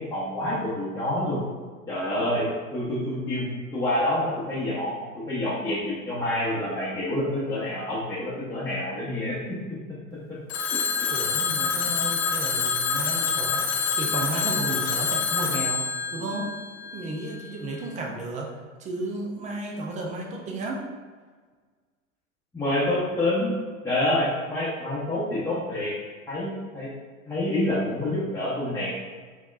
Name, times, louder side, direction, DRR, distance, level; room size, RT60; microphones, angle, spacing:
voice 1, 0.0-1.5 1.9-2.5 2.7-9.4 10.7-11.1 22.5-23.5 23.8-25.9 26.3-26.9 27.3-29.0, left 1 dB, 5° left, -11 dB, 0.8 m, -27 dB
Telephone, 10.5-17.3, left 6 dB, 75° left, 0.6 m, -27 dB
voice 2, 11.1-15.9 16.1-16.5 16.9-18.5 18.8-20.8, right 2 dB, 20° right, 0 dB, 0.4 m, -33 dB
4.3 x 2.8 x 2.4 m, 1.5 s
hypercardioid pair, 95°, 42 cm